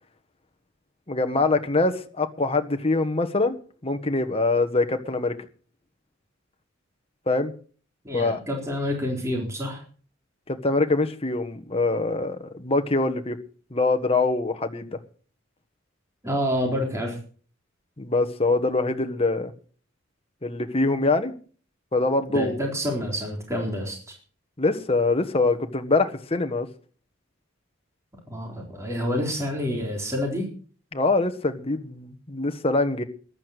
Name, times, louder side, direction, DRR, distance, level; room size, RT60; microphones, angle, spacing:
voice 1, 1.1-3.6 3.8-5.3 7.3-7.5 8.1-8.4 10.5-13.4 13.7-14.9 18.0-19.5 20.4-21.3 21.9-22.6 24.6-26.7 30.9-33.0, left 3 dB, 30° left, 1.4 m, -24 dB
voice 2, 8.0-9.8 16.2-17.2 22.3-24.2 28.3-30.5, equal, 15° right, 4.1 m, -28 dB
14.5 x 11.0 x 6.6 m
head